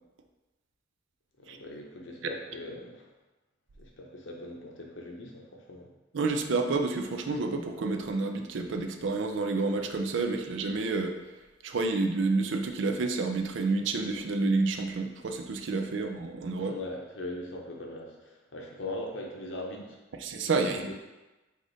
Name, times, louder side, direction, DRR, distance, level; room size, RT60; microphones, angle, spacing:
voice 1, 1.4-3.1 3.8-5.9 16.6-20.0 20.7-20.9, left 1 dB, 70° left, 0 dB, 0.8 m, -40 dB
voice 2, 6.1-11.2 11.6-16.7 20.2-20.9, right 3 dB, 65° right, 5 dB, 0.4 m, -29 dB
4.9 x 2.5 x 3.9 m, 1.1 s
head